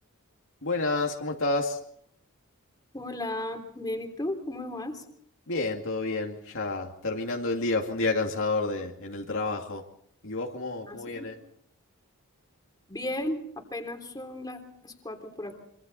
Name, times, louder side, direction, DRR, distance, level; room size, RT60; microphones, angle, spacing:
voice 1, 0.6-1.8 5.5-9.8 10.2-11.4, left 3 dB, 60° left, 1 dB, 2.4 m, -29 dB
voice 2, 2.9-5.0 10.9-11.3 12.9-15.5, left 1 dB, 20° left, 3 dB, 3.4 m, -35 dB
26.0 x 25.0 x 4.1 m, 0.67 s
head